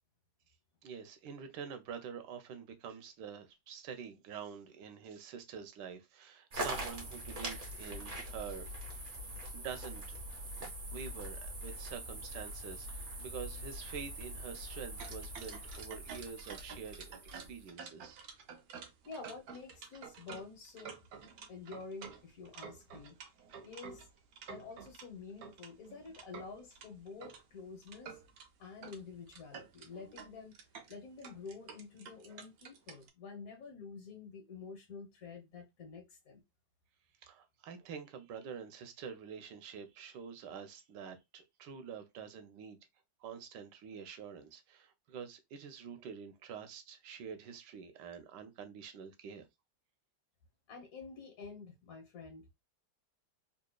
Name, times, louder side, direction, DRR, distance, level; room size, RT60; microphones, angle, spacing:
voice 1, 0.8-9.2 9.5-10.2 10.9-18.2 37.2-42.8 43.2-49.5, right 7 dB, 85° right, 1.4 m, -47 dB
sound 1, 6.5-17.7, right 1 dB, 35° right, 1.0 m, -43 dB
sound 2, 15.0-25.1 25.4-27.4 27.8-28.5 28.8-29.0 29.3-33.1, right 6 dB, 65° right, 1.1 m, -50 dB
voice 2, 19.0-20.9 21.5-23.2 23.6-24.1 24.5-28.2 28.6-30.6 30.9-36.4 50.7-52.5, left 4 dB, 55° left, 1.4 m, -49 dB
4.0 x 2.8 x 2.2 m
omnidirectional pair, 1.8 m